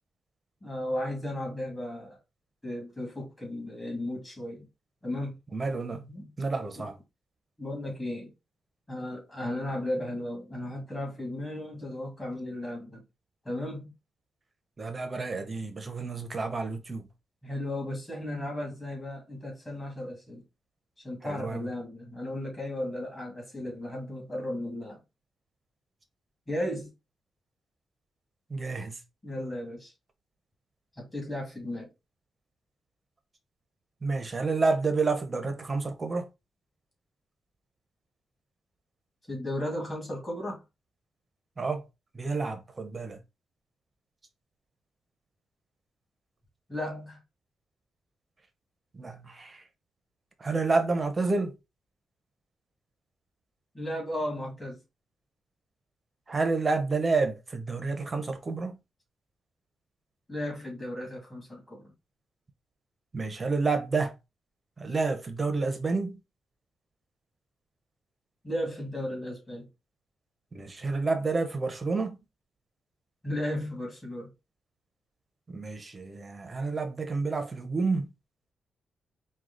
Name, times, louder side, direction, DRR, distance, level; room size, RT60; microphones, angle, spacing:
voice 1, 0.6-2.2 2.6-4.7 5.0-5.4 6.1-6.3 6.8-6.9 7.6-8.3 8.9-13.0 13.4-13.9 17.4-20.4 21.0-25.0 26.5-26.9 29.2-29.9 31.0-31.9 39.3-40.6 46.7-47.2 53.7-54.8 60.3-61.9 68.4-69.7 73.2-74.3, left 1 dB, 15° left, 2.1 m, -35 dB
voice 2, 5.5-6.1 6.4-7.0 14.8-17.1 21.2-21.7 28.5-29.0 34.0-36.3 41.6-41.8 42.1-43.2 48.9-49.7 50.4-51.6 56.3-58.8 63.1-64.1 64.8-66.2 70.5-72.2 75.5-78.1, right 3 dB, 25° right, 0.8 m, -29 dB
4.7 x 2.3 x 3.8 m
wide cardioid pair, 135°, 0 cm